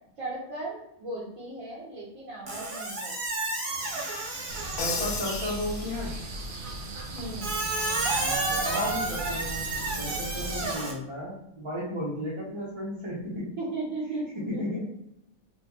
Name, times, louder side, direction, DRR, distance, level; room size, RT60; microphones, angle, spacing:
voice 1, 0.2-3.1 7.1-7.7 10.6-10.9 13.6-14.6, right 2 dB, 70° right, -6 dB, 1.2 m, -37 dB
Squeak, 2.5-5.2 7.4-10.9, right 2 dB, 50° right, 0.9 m, -32 dB
sound 1, 4.5-10.7, right 3 dB, 90° right, 0.4 m, -35 dB
voice 2, 4.7-6.2 8.2-9.7 10.0-13.5 14.1-14.9, left 1 dB, 30° right, -8 dB, 0.6 m, -34 dB
Crash cymbal, 4.8-6.5, left 5 dB, 70° left, 0.5 m, -35 dB
4.3 x 2.2 x 2.7 m, 0.78 s
omnidirectional pair, 1.5 m